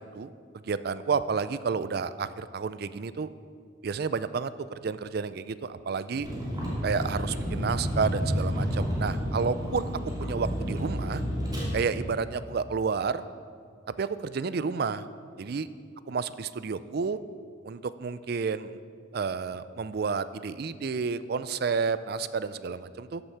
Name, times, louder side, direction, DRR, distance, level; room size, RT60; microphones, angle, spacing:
voice 1, 0.1-3.3 3.8-6.3 6.8-9.9 10.2-11.2 11.7-13.2 14.0-15.1 15.4-15.7 16.1-17.2 17.6-18.8 19.1-23.2, right 5 dB, 55° right, 14 dB, 0.4 m, -30 dB
Vehicle, 6.2-11.7, equal, 20° right, 2.8 m, -30 dB
13.5 x 7.9 x 5.7 m, 2.2 s
head